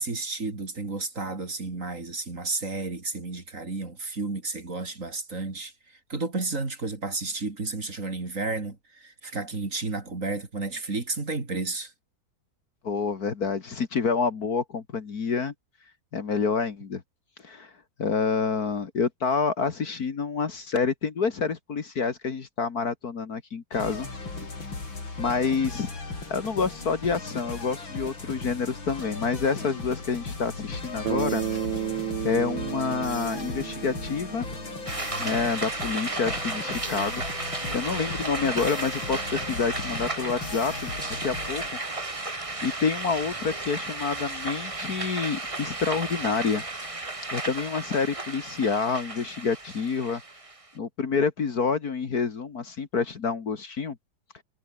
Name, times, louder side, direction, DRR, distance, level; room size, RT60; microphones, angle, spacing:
voice 1, 0.0-11.9, right 3 dB, 40° right, 3.6 m, -32 dB
voice 2, 12.8-15.5 16.1-17.0 17.4-17.7 18.0-24.1 25.2-25.9 26.3-31.4 32.2-34.5 35.2-37.2 37.7-40.9 41.2-41.8 42.6-46.6 47.3-50.2 50.8-54.0, left 5 dB, 50° left, 2.2 m, -28 dB
sound 1, 23.7-41.7, left 3 dB, 80° left, 5.8 m, -37 dB
Bass guitar, 31.0-35.3, right 10 dB, 70° right, 1.8 m, -32 dB
sound 2, 34.9-50.7, right 2 dB, 15° right, 1.8 m, -34 dB
omnidirectional pair, 2.1 m